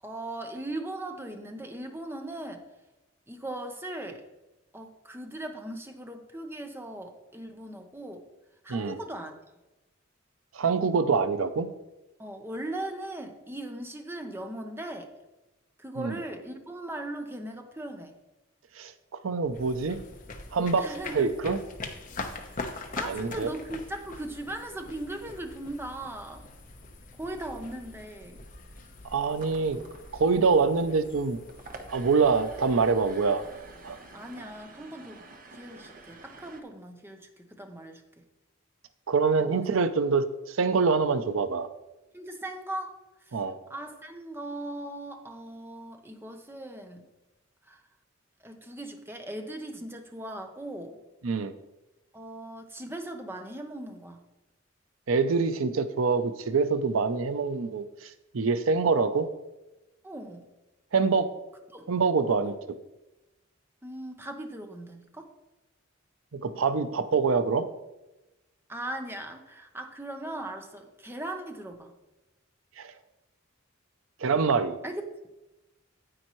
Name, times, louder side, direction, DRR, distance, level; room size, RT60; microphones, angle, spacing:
voice 1, 0.0-2.6 3.3-4.2 4.7-8.2 8.6-9.4 12.2-15.1 15.8-18.1 20.8-21.3 22.3-26.4 27.1-28.4 34.1-35.2 35.5-38.2 39.4-39.7 42.1-43.4 43.7-47.1 47.7-47.8 48.4-51.0 52.1-54.2 60.0-60.5 61.7-61.9 62.4-62.5 63.8-65.3 68.7-71.9 74.8-75.0, right 1 dB, 10° right, 5 dB, 0.8 m, -39 dB
voice 2, 10.5-11.7 16.0-16.2 18.8-18.9 19.2-20.0 20.5-21.6 23.0-23.5 29.0-29.8 30.1-31.4 31.9-33.4 33.8-34.0 39.1-41.7 43.3-43.6 51.2-51.5 55.1-59.3 60.9-61.3 61.9-62.5 66.3-67.6 72.8-72.9 74.2-74.8, right 4 dB, 85° right, 11 dB, 0.6 m, -25 dB
sound 1, 19.4-34.6, left 3 dB, 40° left, 1.0 m, -43 dB
sound 2, 29.2-36.6, right 3 dB, 45° right, 1.0 m, -49 dB
9.7 x 8.7 x 3.1 m, 1.0 s
head